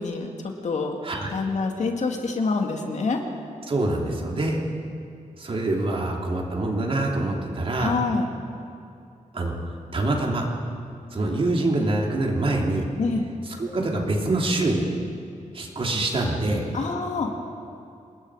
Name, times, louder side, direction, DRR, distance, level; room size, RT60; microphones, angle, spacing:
voice 1, 0.0-1.0 1.3-3.2 7.8-8.3 13.0-13.3 16.7-17.3, left 4 dB, 60° left, 2 dB, 2.3 m, -26 dB
voice 2, 3.7-4.6 5.4-7.9 9.3-9.5 9.9-10.5 11.1-12.9 13.6-14.8 15.5-16.7, right 2 dB, 45° right, 0 dB, 3.1 m, -25 dB
28.0 x 20.5 x 4.9 m, 2.5 s
wide cardioid pair, 150°, 13 cm